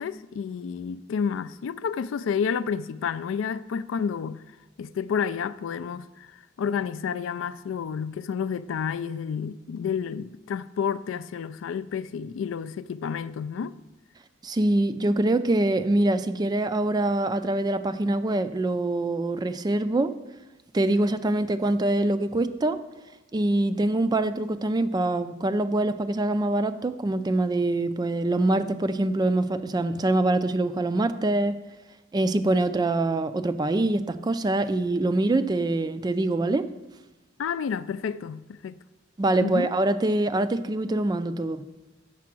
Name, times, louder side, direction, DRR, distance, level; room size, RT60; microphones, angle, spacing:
voice 1, 0.0-4.4 4.8-6.3 6.6-13.7 37.4-38.8 39.4-39.7, left 7 dB, 75° left, 0.3 m, -30 dB
voice 2, 14.4-20.1 20.7-22.8 23.3-31.5 32.1-36.7 39.2-41.6, right 2 dB, 20° right, 0.3 m, -24 dB
7.3 x 6.7 x 6.0 m
head